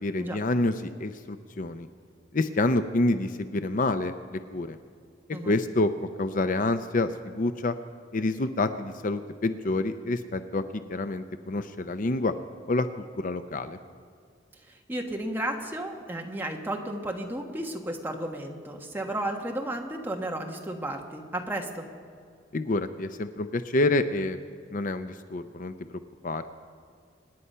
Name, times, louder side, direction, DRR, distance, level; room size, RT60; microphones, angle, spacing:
voice 1, 0.0-1.9 2.3-4.8 5.5-5.9 6.2-7.8 8.1-10.6 10.9-12.3 12.7-12.9 13.2-13.8 22.5-24.4 24.7-25.7 26.2-26.4, left 2 dB, 45° left, 10 dB, 0.6 m, -27 dB
voice 2, 14.6-21.8, right 1 dB, 10° right, 1 dB, 1.4 m, -33 dB
26.0 x 9.8 x 5.6 m, 2.2 s
head